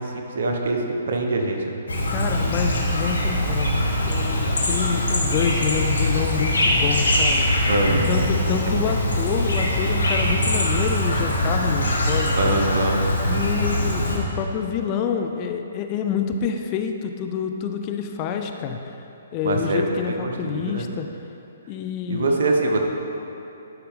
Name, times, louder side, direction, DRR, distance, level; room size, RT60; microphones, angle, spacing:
voice 1, 0.0-1.8 7.7-8.3 12.4-13.0 19.4-20.8 22.1-22.8, right 2 dB, 60° right, 1 dB, 1.2 m, -24 dB
Chirp tweet, 1.9-14.2, left 1 dB, 80° left, 1.7 m, -22 dB
voice 2, 2.1-7.5 8.1-12.4 13.3-19.0 19.3-21.1 21.7-22.4, left 7 dB, 30° left, 5 dB, 0.5 m, -27 dB
11.5 x 5.7 x 3.7 m, 2.9 s
hypercardioid pair, 135°, 0 cm